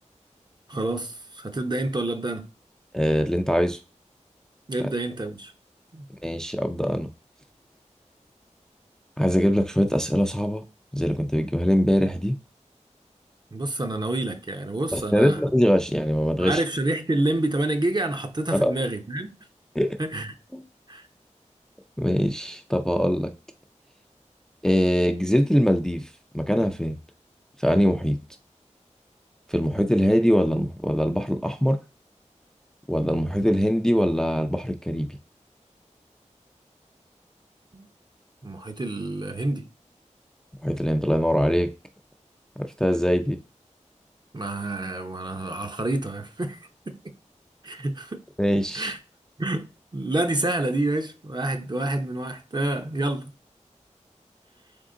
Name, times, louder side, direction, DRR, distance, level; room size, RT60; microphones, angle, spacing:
voice 1, 0.7-2.5 4.7-5.5 5.9-6.1 13.5-15.4 16.4-19.3 20.0-20.3 20.9-21.1 37.7-37.9 38.4-39.7 44.3-47.1 47.6-48.2 48.7-49.0 49.4-49.7 49.9-53.3, right 2 dB, 35° right, 0.7 m, -28 dB
voice 2, 2.9-3.8 6.2-7.1 9.2-10.6 10.9-12.4 14.9-16.6 18.5-18.7 19.8-20.0 20.5-20.6 22.0-23.3 24.6-26.1 26.3-26.9 27.6-28.2 29.5-31.8 32.9-35.1 40.6-41.7 42.6-43.4 48.4-48.9, equal, 5° left, 0.5 m, -22 dB
3.7 x 3.5 x 3.8 m
wide cardioid pair, 55°, 13 cm